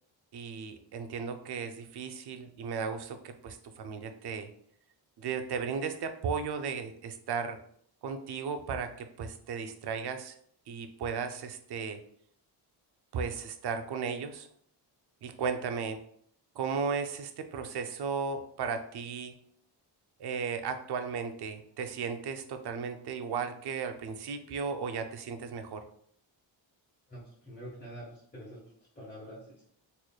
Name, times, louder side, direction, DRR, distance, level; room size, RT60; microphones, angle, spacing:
voice 1, 0.3-4.5 5.2-7.6 8.0-10.3 10.7-12.0 13.1-14.5 15.2-16.0 16.6-19.3 20.2-25.8, right 5 dB, 55° right, 7 dB, 0.5 m, -35 dB
voice 2, 27.1-28.6 28.9-29.7, equal, 20° left, -8 dB, 1.2 m, -46 dB
4.1 x 3.1 x 2.2 m, 0.64 s
wide cardioid pair, 115°, 48 cm